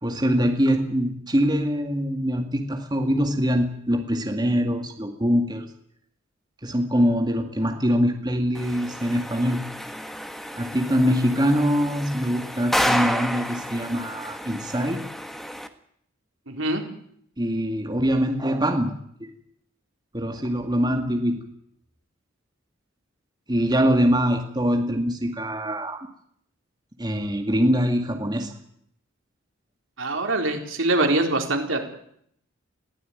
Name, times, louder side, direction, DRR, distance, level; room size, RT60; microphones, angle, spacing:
voice 1, 0.0-5.6 6.6-9.6 10.5-15.0 17.4-19.3 20.1-21.4 23.5-26.0 27.0-28.5, equal, 20° right, 4 dB, 2.1 m, -23 dB
sound 1, 8.6-15.7, equal, ahead, 1.3 m, -30 dB
voice 2, 16.5-16.8 30.0-31.8, right 2 dB, 80° right, 3 dB, 4.1 m, -23 dB
22.0 x 16.0 x 9.4 m, 0.69 s
head